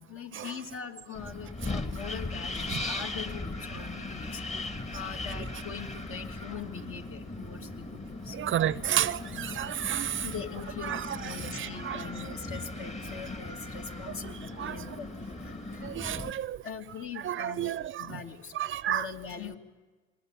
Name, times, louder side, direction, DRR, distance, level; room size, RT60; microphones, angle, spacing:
voice 1, 0.0-8.4 9.2-9.7 10.2-15.9 16.2-16.3 16.6-17.7 18.0-18.5 18.9-19.6, left 6 dB, 45° left, 2.7 m, -42 dB
Wind, 1.1-16.3, left 2 dB, 25° left, 2.1 m, -38 dB
voice 2, 8.3-10.3 10.8-12.0 14.6-14.7 15.8-16.6 17.2-18.1 18.5-19.1, right 11 dB, 45° right, 0.8 m, -31 dB
sound 1, 8.5-14.7, left 5 dB, 70° left, 3.9 m, -55 dB
27.5 x 20.0 x 9.1 m
supercardioid pair, 85°, 29 cm